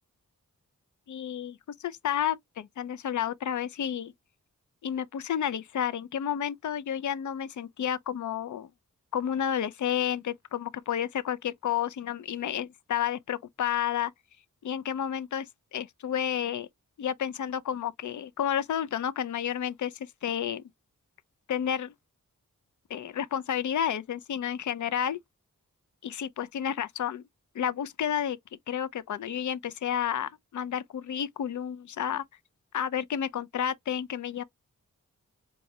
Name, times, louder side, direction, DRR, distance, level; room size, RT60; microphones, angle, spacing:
voice 1, 1.1-4.1 4.8-8.7 9.1-14.1 14.6-15.5 15.7-16.7 17.0-20.6 21.5-21.9 22.9-25.2 26.0-27.2 27.5-28.4 28.7-32.2 32.7-34.4, left 9 dB, 60° left, 0.5 m, -31 dB
4.1 x 2.3 x 2.7 m
cardioid pair, 50°, 34 cm